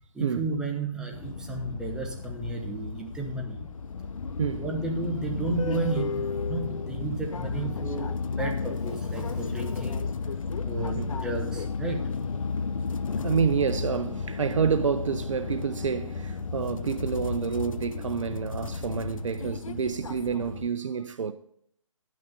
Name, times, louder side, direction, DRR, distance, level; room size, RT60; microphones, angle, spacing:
voice 1, 0.1-3.7 4.5-8.1 8.4-10.1 10.7-12.3, right 3 dB, 5° right, 0.8 m, -33 dB
sound 1, 1.1-20.7, left 5 dB, 75° left, 0.6 m, -33 dB
voice 2, 13.2-21.3, right 6 dB, 65° right, 0.6 m, -28 dB
10.5 x 6.2 x 5.2 m
figure-of-eight pair, 145°, 17 cm